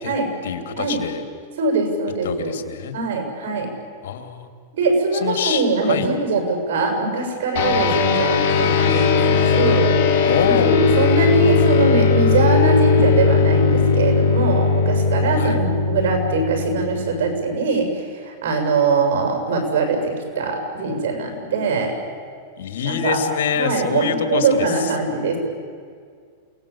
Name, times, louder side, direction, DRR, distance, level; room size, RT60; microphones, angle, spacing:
voice 1, 0.4-1.2 2.2-3.0 4.0-4.5 5.1-6.1 10.2-10.8 15.4-15.6 22.6-24.9, left 8 dB, 80° left, 7 dB, 2.9 m, -25 dB
voice 2, 1.6-2.5 2.9-3.7 4.7-10.0 10.5-21.9 22.8-23.2 23.6-25.4, right 3 dB, 70° right, 3 dB, 7.3 m, -22 dB
sound 1, 7.6-17.3, left 5 dB, 60° left, 4.7 m, -18 dB
sound 2, 8.5-12.0, left 6 dB, 35° left, 3.9 m, -30 dB
28.5 x 19.0 x 8.6 m, 2.1 s
supercardioid pair, 145°, 0 cm